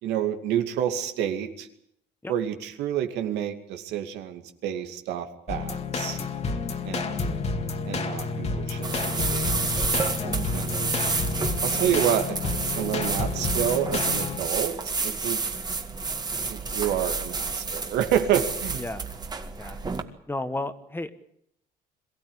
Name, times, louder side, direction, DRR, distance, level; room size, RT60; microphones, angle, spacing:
voice 1, 0.0-1.7 2.3-6.2 6.8-7.4 7.9-9.9 10.5-11.0 11.6-14.8 15.0-15.4 16.5-18.8, right 10 dB, 85° right, 7 dB, 2.4 m, -29 dB
sound 1, 5.5-14.4, left 4 dB, 40° left, 2.3 m, -30 dB
sound 2, 8.8-20.0, right 4 dB, 25° right, 2.1 m, -30 dB
voice 2, 20.3-21.1, left 2 dB, 10° left, 11 dB, 1.6 m, -32 dB
23.0 x 15.5 x 9.9 m, 0.70 s
cardioid pair, 110°, 17 cm